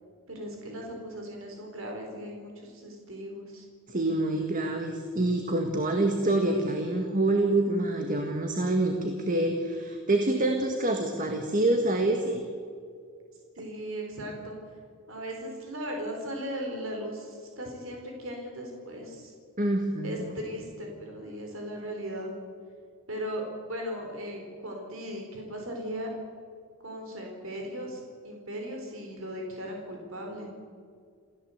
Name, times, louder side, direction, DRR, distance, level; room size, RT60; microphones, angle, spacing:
voice 1, 0.3-3.6 13.5-14.5 15.1-19.3 20.0-22.3 23.1-23.4 23.7-26.1 26.8-30.5, equal, 60° right, 1 dB, 4.6 m, -37 dB
voice 2, 3.9-12.4 19.6-20.2, right 2 dB, 35° right, 4 dB, 1.8 m, -26 dB
28.0 x 16.0 x 8.1 m, 2.2 s
head